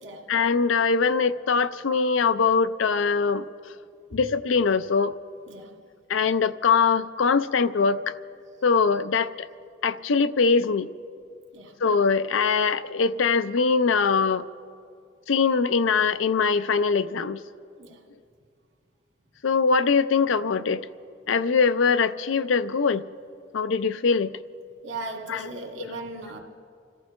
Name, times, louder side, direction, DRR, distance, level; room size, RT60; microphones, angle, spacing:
voice 1, 0.3-3.5 4.1-5.1 6.1-8.0 8.6-9.5 9.8-10.9 11.8-14.4 15.3-17.4 19.4-20.9 21.3-23.0 23.5-24.3 25.3-25.4 25.8-25.9, left 5 dB, 90° left, 13 dB, 0.5 m, -22 dB
voice 2, 24.8-26.4, right 2 dB, 80° right, 1 dB, 2.0 m, -38 dB
29.5 x 14.5 x 3.2 m, 2.3 s
head